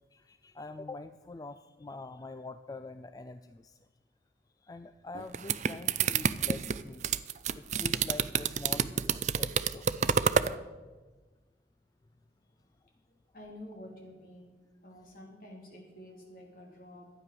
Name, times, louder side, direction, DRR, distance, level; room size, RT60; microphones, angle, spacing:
voice 1, 0.1-3.8 4.6-7.0 7.5-8.9 9.2-9.9, left 3 dB, 20° left, 10 dB, 0.3 m, -44 dB
sound 1, 5.1-10.5, right 7 dB, 40° right, 0.4 m, -29 dB
voice 2, 13.1-14.5 14.8-17.1, left 1 dB, 55° left, 0 dB, 3.1 m, -49 dB
12.5 x 9.1 x 6.7 m, 1.2 s
head